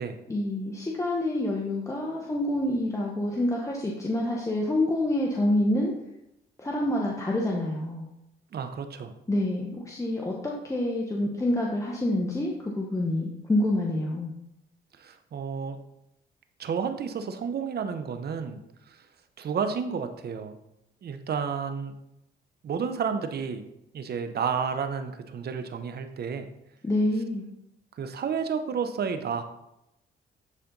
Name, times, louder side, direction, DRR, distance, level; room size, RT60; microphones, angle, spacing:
voice 1, 0.3-5.9 6.6-8.1 9.3-14.3 26.8-27.4, left 1 dB, 15° left, -2 dB, 1.2 m, -27 dB
voice 2, 8.5-9.1 15.0-15.8 16.6-18.6 18.9-19.0 19.4-20.5 21.0-21.9 22.6-23.6 23.9-26.5 28.0-29.4, right 6 dB, 55° right, 8 dB, 0.9 m, -31 dB
11.0 x 4.3 x 4.0 m, 0.83 s
cardioid pair, 90°, 20 cm